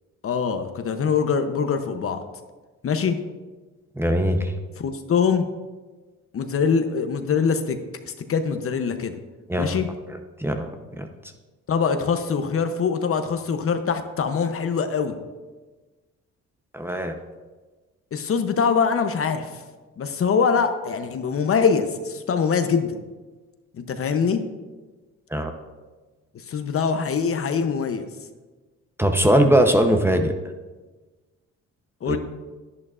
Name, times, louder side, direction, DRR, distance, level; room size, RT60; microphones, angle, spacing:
voice 1, 0.2-2.2 2.8-3.2 4.8-5.5 6.3-7.8 8.0-9.1 9.6-9.9 11.7-15.2 18.1-19.6 20.0-22.9 23.8-24.4 26.3-28.0 32.0-32.2, left 6 dB, 50° left, 8 dB, 0.8 m, -23 dB
voice 2, 4.0-4.5 9.5-9.8 10.4-10.7 11.0-11.1 16.7-17.1 25.3-25.5 29.0-30.3 32.1-32.2, equal, 10° right, 5 dB, 0.8 m, -20 dB
11.0 x 11.0 x 2.5 m, 1.3 s
cardioid pair, 90°, 30 cm